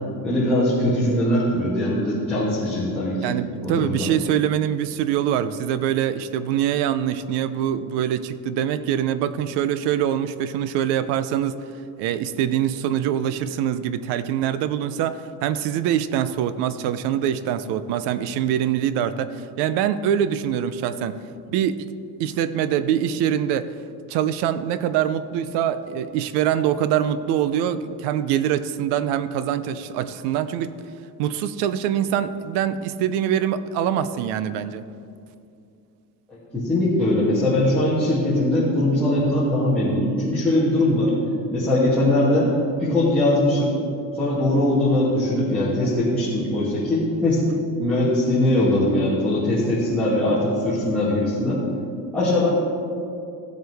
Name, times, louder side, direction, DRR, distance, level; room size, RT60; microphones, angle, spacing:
voice 1, 0.2-3.3 3.6-4.1 36.3-41.1 41.5-42.5 42.8-43.7 44.2-47.4 47.8-51.6 52.1-52.5, left 1 dB, 5° left, -13 dB, 2.4 m, -21 dB
voice 2, 3.2-11.6 12.0-21.2 21.5-21.9 22.2-23.7 24.1-30.7 31.2-34.9, right 10 dB, 80° right, 13 dB, 0.7 m, -24 dB
16.0 x 7.9 x 3.5 m, 2.5 s
cardioid pair, 160°, 40 cm